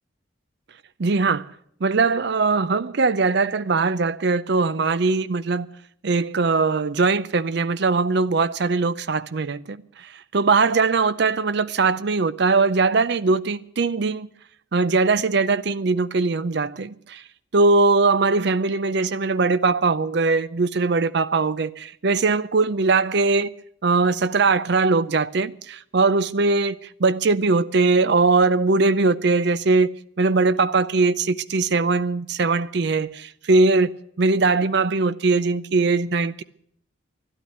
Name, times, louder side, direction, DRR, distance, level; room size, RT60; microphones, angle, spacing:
voice 1, 1.0-1.5 1.8-5.7 6.0-14.3 14.7-17.2 17.5-23.5 23.8-29.9 30.2-36.4, right 3 dB, 55° right, 0.5 m, -21 dB
12.5 x 11.0 x 9.1 m
head